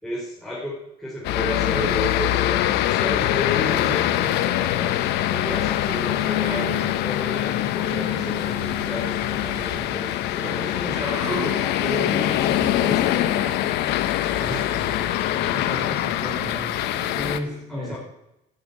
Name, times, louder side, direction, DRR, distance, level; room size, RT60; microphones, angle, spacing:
voice 1, 0.0-5.0 5.3-6.7 7.0-13.6 17.4-18.0, equal, ahead, -5 dB, 4.5 m, -32 dB
sound 1, 1.2-17.4, left 13 dB, 90° left, 1.1 m, -23 dB
sound 2, 6.4-7.0 7.5-10.2 10.5-13.4 13.7-15.7, right 2 dB, 15° right, 7.0 m, -39 dB
voice 2, 15.5-18.0, equal, 30° right, -2 dB, 5.3 m, -34 dB
11.5 x 9.5 x 8.5 m, 0.87 s
cardioid pair, 110°, 17 cm